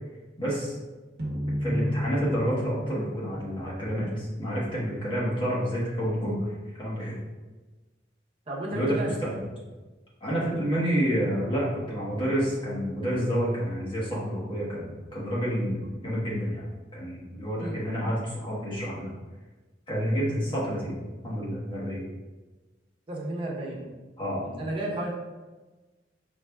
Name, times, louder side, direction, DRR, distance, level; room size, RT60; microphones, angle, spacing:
voice 1, 0.4-0.8 1.6-6.5 6.8-7.2 8.7-9.4 10.2-16.7 16.9-19.1 19.9-20.9 21.2-22.0 24.2-24.4, equal, 25° left, -6 dB, 1.2 m, -29 dB
sound 1, 1.2-4.4, equal, 55° right, 0.8 m, -32 dB
voice 2, 8.5-9.1 17.6-17.8 23.1-23.9 24.4-25.1, right 1 dB, 30° right, -4 dB, 0.8 m, -32 dB
4.6 x 3.4 x 2.3 m, 1.2 s
head